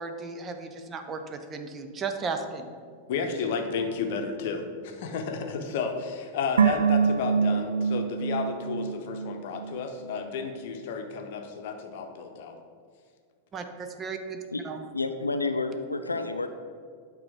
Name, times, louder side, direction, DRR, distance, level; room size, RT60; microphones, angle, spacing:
voice 1, 0.0-2.7 13.5-14.9, right 4 dB, 25° right, 6 dB, 0.6 m, -35 dB
voice 2, 3.1-12.6, left 5 dB, 55° left, 5 dB, 0.8 m, -32 dB
sound 1, 6.6-9.9 10.1-10.2, right 6 dB, 70° right, 0.4 m, -25 dB
voice 3, 14.9-16.5, left 3 dB, 80° left, 8 dB, 0.4 m, -29 dB
8.9 x 3.8 x 5.0 m, 2.1 s
figure-of-eight pair, 90°, 0 cm